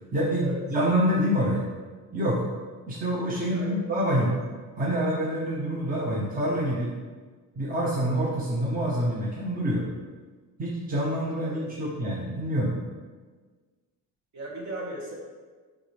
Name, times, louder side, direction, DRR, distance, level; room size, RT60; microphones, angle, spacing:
voice 1, 0.1-1.7 2.1-2.5 2.9-4.4 4.8-6.9 7.6-9.8 10.6-12.7, equal, 25° right, -4 dB, 1.1 m, -26 dB
voice 2, 3.5-3.8 4.1-4.3 11.4-11.7 14.3-15.1, right 2 dB, 50° right, -2 dB, 1.9 m, -37 dB
9.5 x 3.6 x 3.5 m, 1.4 s
cardioid pair, 130°, 35 cm